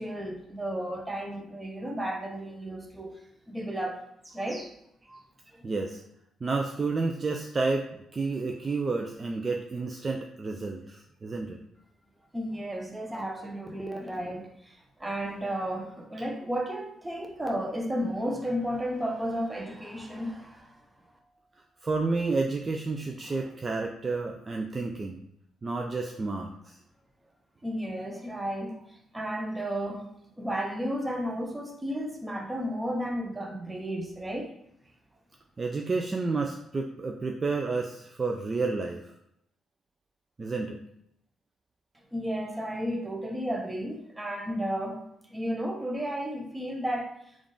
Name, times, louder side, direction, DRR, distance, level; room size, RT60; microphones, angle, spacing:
voice 1, 0.0-3.2 3.5-4.7 5.1-5.2 5.5-5.7 12.3-20.8 27.6-28.8 29.1-30.1 30.4-34.5 42.1-45.0 45.3-47.1, equal, 10° right, 0.7 m, -33 dB
voice 2, 5.6-6.0 6.4-11.6 21.8-25.2 25.6-26.8 35.6-39.1 40.4-40.8, right 3 dB, 30° right, 0.3 m, -30 dB
3.5 x 2.4 x 3.8 m
cardioid pair, 90°, 0 cm